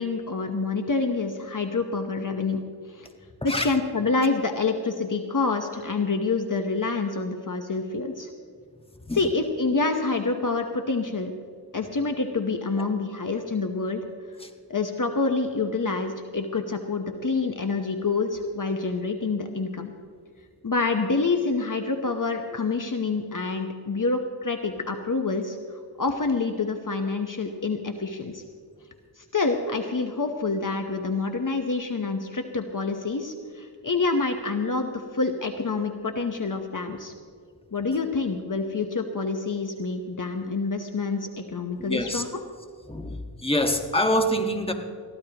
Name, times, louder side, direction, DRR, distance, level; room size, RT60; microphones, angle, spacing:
voice 1, 0.0-2.6 2.9-3.1 3.4-8.3 9.2-11.3 11.7-14.0 14.7-19.9 20.6-25.6 26.0-28.4 29.2-37.1 37.7-42.3, left 3 dB, 45° left, 5 dB, 1.0 m, -27 dB
voice 2, 41.8-42.2 42.9-44.7, equal, 15° left, 4 dB, 1.5 m, -26 dB
22.0 x 15.0 x 3.0 m, 2.1 s
wide cardioid pair, 65°, 43 cm